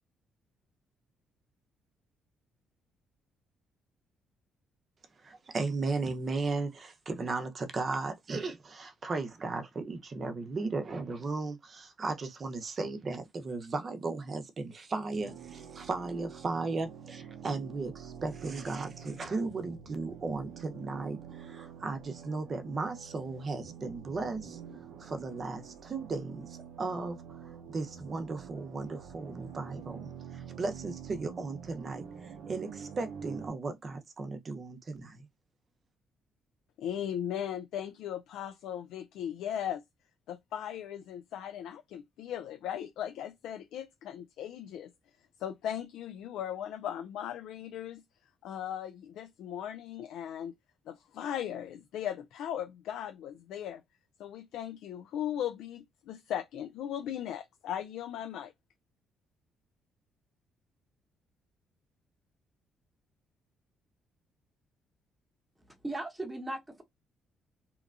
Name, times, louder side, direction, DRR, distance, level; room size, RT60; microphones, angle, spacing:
voice 1, 5.2-24.6 25.0-27.4 27.7-35.3, right 3 dB, 40° right, 0.7 m, -36 dB
sound 1, 15.1-33.5, right 7 dB, 80° right, 0.5 m, -47 dB
voice 2, 36.8-39.8 40.3-44.9 45.4-48.0 48.4-50.5 50.9-53.8 54.2-58.5, left 10 dB, 80° left, 0.3 m, -38 dB
voice 3, 65.6-66.8, right 2 dB, 10° right, 0.9 m, -38 dB
2.9 x 2.2 x 2.4 m
cardioid pair, 90°, 0 cm